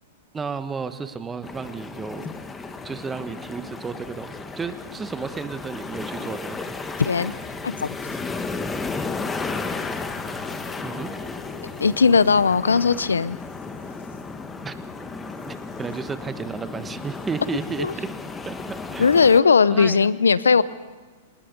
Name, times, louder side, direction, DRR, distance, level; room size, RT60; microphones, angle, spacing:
voice 1, 0.3-2.3 2.8-6.9 10.8-11.1 14.6-14.7 15.5-18.1 18.4-19.1 19.7-20.1, right 5 dB, 15° right, 11 dB, 1.3 m, -33 dB
sound 1, 1.4-19.4, left 4 dB, 15° left, 1.3 m, -34 dB
voice 2, 7.0-7.3 7.6-8.0 11.8-13.4 17.8-17.9 19.0-20.6, left 5 dB, 90° left, 18 dB, 0.6 m, -18 dB
sound 2, 9.1-17.8, left 6 dB, 65° left, 4.2 m, -47 dB
27.0 x 20.0 x 5.3 m, 1.4 s
hypercardioid pair, 110°, 0 cm